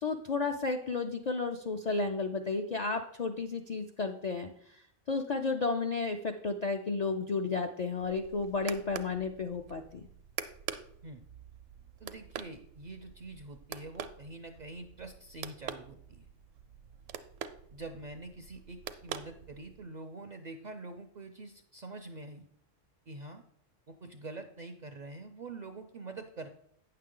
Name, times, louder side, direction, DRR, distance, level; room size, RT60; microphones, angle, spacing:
voice 1, 0.0-10.1, left 4 dB, 60° left, 4 dB, 0.4 m, -33 dB
sound 1, 8.0-19.9, right 8 dB, 70° right, 0.8 m, -45 dB
voice 2, 12.0-16.3 17.7-22.5 23.1-23.4 23.9-26.5, right 2 dB, 55° right, 6 dB, 0.5 m, -45 dB
9.1 x 6.6 x 3.7 m, 0.69 s
omnidirectional pair, 1.3 m